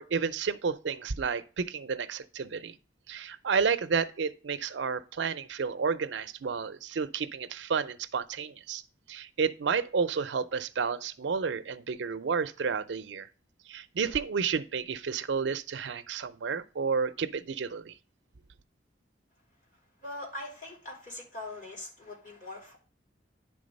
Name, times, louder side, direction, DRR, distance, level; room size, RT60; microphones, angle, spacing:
voice 1, 0.0-2.7 3.1-8.8 9.1-13.3 13.7-17.9, right 5 dB, 80° right, 0.5 m, -31 dB
voice 2, 20.0-22.8, left 2 dB, 45° left, 2.9 m, -42 dB
10.0 x 3.6 x 5.2 m
head